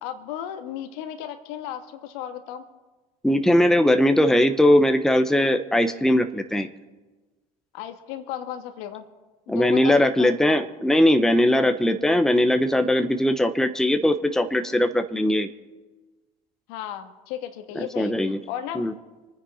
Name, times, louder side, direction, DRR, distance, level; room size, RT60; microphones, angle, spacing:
voice 1, 0.0-2.6 7.7-9.1 9.5-10.6 16.7-18.9, left 10 dB, 70° left, 7 dB, 1.7 m, -35 dB
voice 2, 3.2-6.7 9.5-15.5 17.8-18.4 18.7-18.9, left 1 dB, ahead, 8 dB, 1.0 m, -20 dB
25.5 x 10.0 x 4.3 m, 1.2 s
hypercardioid pair, 75°, 20 cm